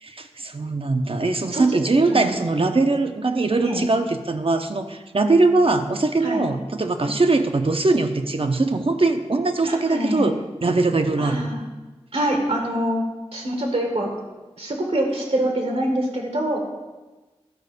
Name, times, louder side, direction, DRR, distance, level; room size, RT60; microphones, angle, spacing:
voice 1, 0.0-10.4 10.6-11.5, right 3 dB, 55° right, 6 dB, 0.8 m, -21 dB
voice 2, 9.6-10.4 11.2-11.6 12.1-13.0 13.3-14.1 14.6-16.6, right 1 dB, 80° right, 1 dB, 1.7 m, -25 dB
12.0 x 4.3 x 6.6 m, 1.2 s
wide cardioid pair, 45°, 11 cm